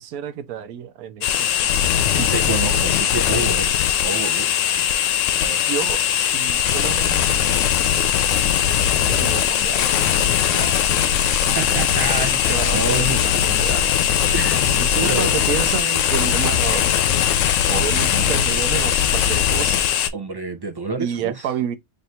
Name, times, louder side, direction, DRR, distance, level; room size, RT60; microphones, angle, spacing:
voice 1, 0.0-1.9 5.7-7.5 7.8-7.9 9.0-9.9 12.2-14.0 14.8-16.9 17.7-19.9 21.0-21.8, right 9 dB, 85° right, 1.1 m, -30 dB
sound 1, 1.2-20.1, left 9 dB, 70° left, 0.9 m, -20 dB
voice 2, 2.1-3.7 4.0-4.5 5.3-5.6 10.5-10.9 11.5-13.2 13.5-13.6 14.3-15.4 15.8-16.0 20.1-21.5, right 3 dB, 30° right, 0.4 m, -28 dB
3.3 x 2.7 x 4.2 m
omnidirectional pair, 1.5 m